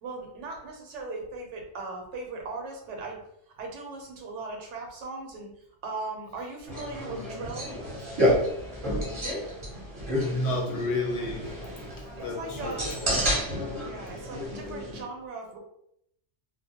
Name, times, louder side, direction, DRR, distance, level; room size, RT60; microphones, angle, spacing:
voice 1, 0.0-3.2 3.5-5.5 5.8-7.7 12.2-12.9 13.8-15.6, right 3 dB, 80° right, 1 dB, 0.9 m, -38 dB
sound 1, 6.7-15.0, equal, 30° right, 0.6 m, -30 dB
voice 2, 10.1-11.4 12.2-13.1, left 1 dB, 70° left, 1 dB, 0.8 m, -31 dB
2.2 x 2.0 x 2.7 m, 0.76 s
omnidirectional pair, 1.2 m